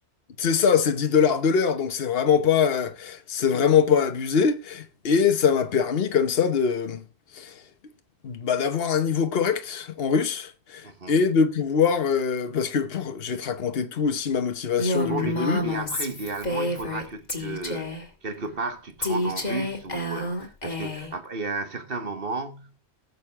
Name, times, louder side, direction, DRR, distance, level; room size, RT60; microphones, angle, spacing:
voice 1, 0.4-7.0 7.3-7.6 8.2-15.6, left 6 dB, 65° left, 1.2 m, -23 dB
voice 2, 10.8-11.1 14.8-22.8, right 3 dB, 60° right, 1.7 m, -33 dB
Female speech woman speaking, 14.8-17.0 17.3-18.0 19.0-21.1, left 1 dB, 40° left, 2.3 m, -29 dB
18.5 x 6.9 x 3.5 m
omnidirectional pair, 1.1 m